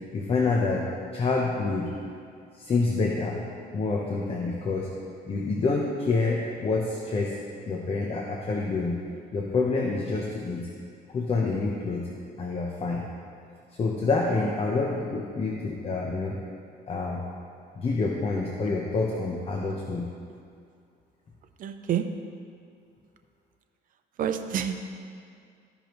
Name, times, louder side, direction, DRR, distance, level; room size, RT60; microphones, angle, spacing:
voice 1, 0.1-0.8 1.1-1.9 2.5-3.4 3.7-4.9 5.3-7.4 7.7-9.0 9.3-10.7 11.1-12.0 12.4-13.1 13.8-16.4 16.9-17.2 17.8-20.1, left 3 dB, 35° left, -2 dB, 0.9 m, -27 dB
voice 2, 21.6-22.1 24.2-25.0, right 8 dB, 55° right, 7 dB, 0.6 m, -28 dB
14.0 x 5.2 x 3.1 m, 2.3 s
cardioid pair, 110°, 17 cm